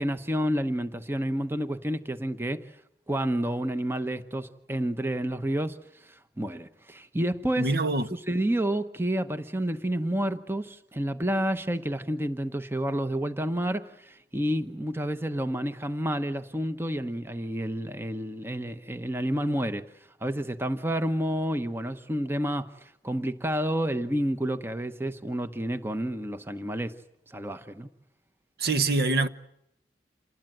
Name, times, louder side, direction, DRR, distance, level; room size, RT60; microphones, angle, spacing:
voice 1, 0.0-2.7 3.1-5.8 6.0-7.7 8.1-19.9 20.2-27.0 27.3-27.9, right 1 dB, 15° right, 1.0 m, -29 dB
voice 2, 7.6-8.1 28.6-29.3, right 3 dB, 60° right, 1.1 m, -24 dB
28.0 x 20.0 x 9.1 m
head